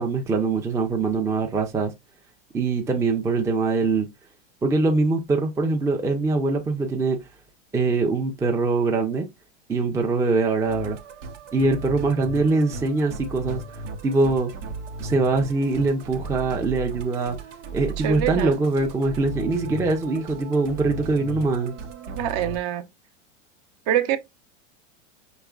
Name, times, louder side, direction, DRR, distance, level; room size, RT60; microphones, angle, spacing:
voice 1, 0.0-1.9 2.5-4.1 4.6-7.2 7.7-9.3 9.7-11.0 11.5-13.6 14.0-14.5 15.0-17.4 17.7-21.7, right 3 dB, 10° right, 0.5 m, -23 dB
Musical instrument, 10.6-22.6, right 3 dB, 90° right, 0.9 m, -36 dB
voice 2, 18.0-18.6 22.2-22.8 23.9-24.2, right 11 dB, 45° right, 0.8 m, -24 dB
4.9 x 3.1 x 2.3 m
supercardioid pair, 125°, 35 cm